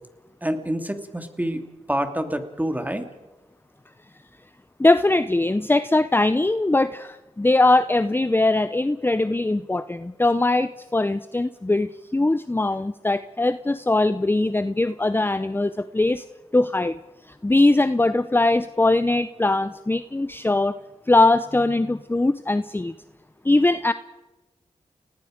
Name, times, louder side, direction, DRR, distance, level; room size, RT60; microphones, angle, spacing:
voice 1, 0.4-3.0, right 1 dB, 15° right, 7 dB, 2.6 m, -27 dB
voice 2, 4.8-16.2 16.5-17.0 17.3-20.8 21.1-22.9 23.4-23.9, left 2 dB, 15° left, 13 dB, 0.7 m, -21 dB
30.0 x 19.0 x 5.1 m, 1.1 s
cardioid pair, 45°, 13 cm